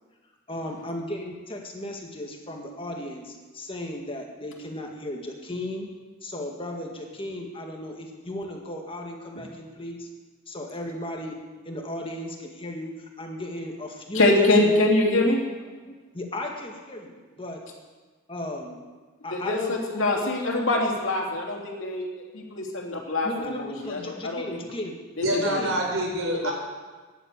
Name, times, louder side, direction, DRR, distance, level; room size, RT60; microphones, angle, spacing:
voice 1, 0.5-5.9 6.2-10.1 10.5-11.3 11.6-14.7 15.8-17.6 18.3-18.8 19.2-19.8 20.1-20.3 23.2-25.0 25.3-25.8, left 1 dB, 25° left, 1 dB, 1.9 m, -35 dB
voice 2, 14.1-15.4 19.3-22.1 22.3-23.3 23.6-24.6 25.2-25.6 26.4-26.5, left 2 dB, 60° left, 0 dB, 2.9 m, -24 dB
voice 3, 25.2-26.5, right 1 dB, 65° right, 0 dB, 4.5 m, -26 dB
14.5 x 11.0 x 8.3 m, 1.4 s
head